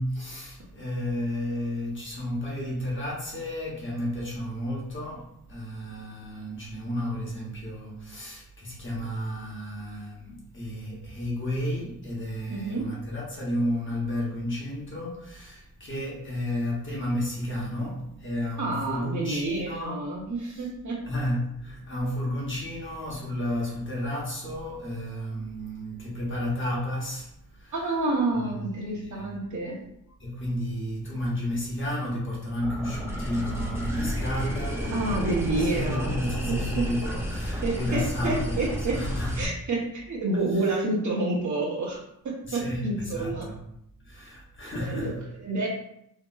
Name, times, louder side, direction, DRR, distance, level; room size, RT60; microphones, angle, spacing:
voice 1, 0.0-20.1 21.0-27.3 27.6-27.7 28.3-29.3 30.2-38.6 38.9-39.4 42.4-43.6 44.0-45.1, left 1 dB, 35° left, 0.8 m, -32 dB
voice 2, 12.5-12.9 18.6-21.0 27.7-29.8 34.9-36.1 36.5-36.8 37.6-38.9 39.4-42.0 42.5-43.5 44.7-45.7, right 2 dB, 55° right, 0.8 m, -29 dB
sound 1, 32.6-39.4, equal, 10° right, 0.4 m, -31 dB
2.9 x 2.7 x 2.3 m
wide cardioid pair, 150°, 35 cm